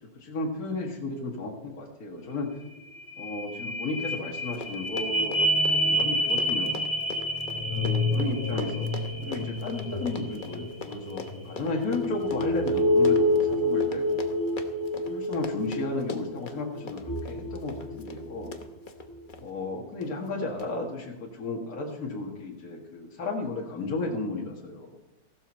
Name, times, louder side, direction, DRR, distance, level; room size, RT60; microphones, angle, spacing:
voice 1, 0.0-2.5 3.2-6.8 7.7-14.2 15.0-18.5 19.4-25.0, left 2 dB, 50° left, -1 dB, 2.3 m, -34 dB
sound 1, 2.3-2.4 2.7-18.6 19.1-19.2, left 1 dB, 10° left, 1.5 m, -28 dB
Run, 4.2-4.3 4.5-19.4 20.0-20.3 20.6-20.7, left 4 dB, 35° left, 0.9 m, -41 dB
15.0 x 12.5 x 4.4 m, 0.92 s
omnidirectional pair, 2.0 m